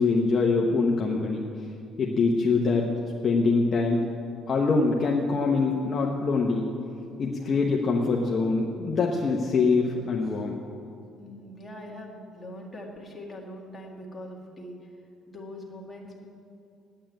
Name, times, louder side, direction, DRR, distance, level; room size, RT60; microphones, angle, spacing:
voice 1, 0.0-1.4 2.0-2.9 3.2-4.0 4.5-6.6 7.2-10.6, left 4 dB, 35° left, -1 dB, 0.9 m, -24 dB
voice 2, 11.2-14.9 15.3-16.3, left 1 dB, 10° left, -2 dB, 1.8 m, -42 dB
8.8 x 8.7 x 9.1 m, 2.6 s
cardioid pair, 160°, 0 cm